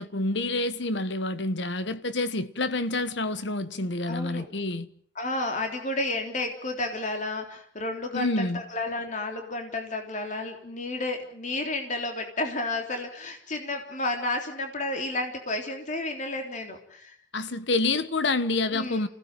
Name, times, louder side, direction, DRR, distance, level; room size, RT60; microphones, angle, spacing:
voice 1, 0.0-4.9 8.1-8.6 17.3-19.1, left 2 dB, 65° left, 1.4 m, -28 dB
voice 2, 4.1-4.5 5.2-17.2 18.7-19.0, left 2 dB, 40° left, 3.6 m, -31 dB
29.0 x 17.0 x 9.2 m
head